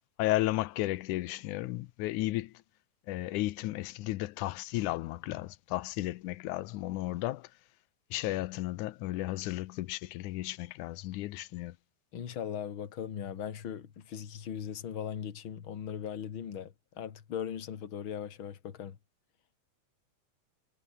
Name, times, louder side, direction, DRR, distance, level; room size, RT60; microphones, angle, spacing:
voice 1, 0.2-2.5 3.1-7.5 8.1-11.7, left 17 dB, 90° left, 2.3 m, -34 dB
voice 2, 12.1-19.0, left 8 dB, 45° left, 2.5 m, -39 dB
omnidirectional pair, 3.4 m